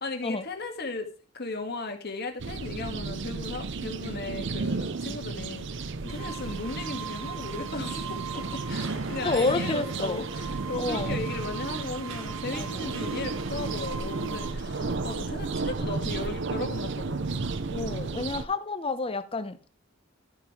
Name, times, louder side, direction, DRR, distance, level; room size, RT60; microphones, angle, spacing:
voice 1, 0.0-5.7 6.0-17.5 17.8-18.2 18.8-18.9, left 3 dB, 55° left, 4 dB, 1.8 m, -36 dB
sound 1, 2.4-18.5, right 3 dB, 65° right, 0.7 m, -33 dB
sound 2, 6.1-14.5, right 6 dB, 80° right, 1.2 m, -41 dB
voice 2, 9.2-10.2 10.8-11.2 12.5-12.9 14.8-15.0 17.7-19.7, left 3 dB, 30° left, 11 dB, 0.8 m, -30 dB
12.5 x 5.4 x 4.8 m, 0.37 s
head